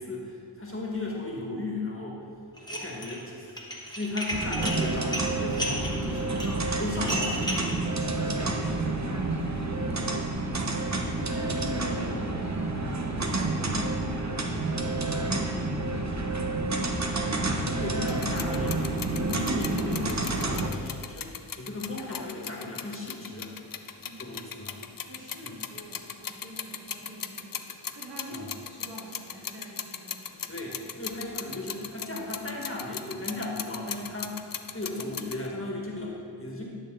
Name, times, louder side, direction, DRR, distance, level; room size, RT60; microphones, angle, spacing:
voice 1, 0.0-2.2 2.7-6.4 6.7-7.8 17.6-23.5 24.2-24.7 25.4-25.6 28.3-28.5 30.5-36.6, left 2 dB, 30° left, -3 dB, 1.7 m, -36 dB
Dishes pots and pans, 2.6-3.2 3.5-7.7, equal, 10° left, 1.5 m, -33 dB
sound 1, 4.3-20.7, right 2 dB, 40° right, 0.9 m, -29 dB
voice 2, 8.4-16.8 24.0-24.7 25.1-30.5, right 1 dB, 60° right, -5 dB, 2.1 m, -45 dB
sound 2, 18.1-35.5, left 7 dB, 50° left, 0.6 m, -39 dB
11.0 x 6.5 x 3.8 m, 2.4 s
wide cardioid pair, 45°, 44 cm